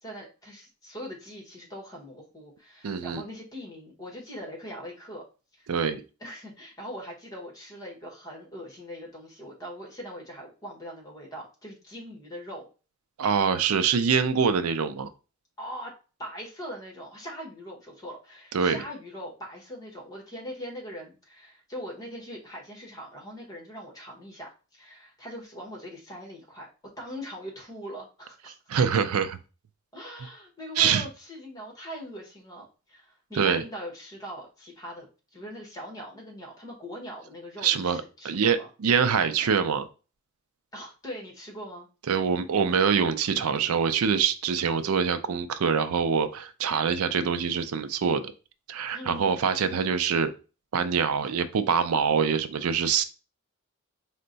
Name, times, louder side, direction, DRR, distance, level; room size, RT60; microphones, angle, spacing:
voice 1, 0.0-5.2 5.6-5.7 6.2-12.7 15.6-15.9 16.2-26.7 27.0-28.6 29.9-35.1 35.3-38.7 40.7-41.9 48.9-49.5, equal, 15° left, 0 dB, 1.2 m, -41 dB
voice 2, 2.8-3.2 5.7-6.0 13.2-15.1 18.5-18.8 28.7-29.4 30.8-31.0 33.4-33.6 37.6-39.9 42.1-48.3 48.7-50.3 50.7-53.0, right 6 dB, 85° right, 11 dB, 0.4 m, -24 dB
4.4 x 2.2 x 3.9 m, 0.33 s
head